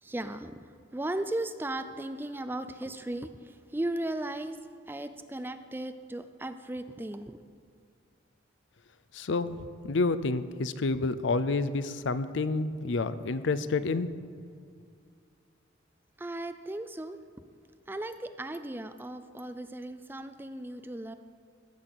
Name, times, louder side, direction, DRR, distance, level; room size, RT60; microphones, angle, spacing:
voice 1, 0.0-4.6 4.9-7.4 16.2-17.2 17.9-21.1, right 1 dB, 10° right, 10 dB, 0.4 m, -36 dB
voice 2, 9.1-14.1, left 3 dB, 75° left, 14 dB, 0.5 m, -29 dB
14.5 x 5.9 x 6.9 m, 2.3 s
head